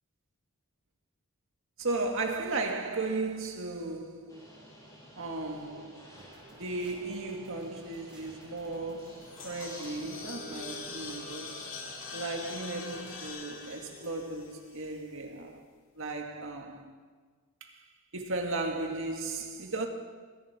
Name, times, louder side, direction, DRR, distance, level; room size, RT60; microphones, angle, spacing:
voice 1, 1.8-4.5 5.2-11.9 12.1-15.7 16.0-16.9 17.6-17.9 18.1-19.9, right 3 dB, 60° right, 2.0 m, -36 dB
sound 1, 4.3-13.3, equal, 15° left, 5.0 m, -52 dB
sound 2, 6.2-11.2, right 1 dB, 5° right, 2.3 m, -57 dB
sound 3, 9.0-15.3, left 4 dB, 60° left, 2.1 m, -44 dB
24.5 x 10.5 x 4.4 m
head